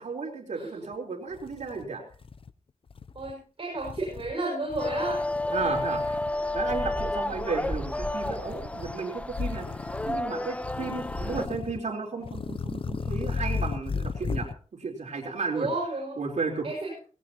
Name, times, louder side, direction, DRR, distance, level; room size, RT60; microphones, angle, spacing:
voice 1, 0.0-2.0 5.5-6.2 6.5-9.7 10.1-15.7 16.2-16.7, right 4 dB, 80° right, 1 dB, 4.1 m, -33 dB
sound 1, 0.9-1.0 1.3-2.5 2.9-3.3 3.8-4.3 4.7-6.3 6.6-7.1 8.2-9.0 9.3-10.2 10.6-11.8 12.2-14.5, left 5 dB, 50° left, 0.6 m, -35 dB
voice 2, 3.1-5.2 15.5-16.2 16.6-17.0, right 2 dB, 50° right, -2 dB, 6.0 m, -32 dB
sound 2, 4.8-11.5, left 1 dB, 10° left, 0.6 m, -31 dB
19.0 x 17.5 x 3.0 m, 0.40 s
wide cardioid pair, 100°, 12 cm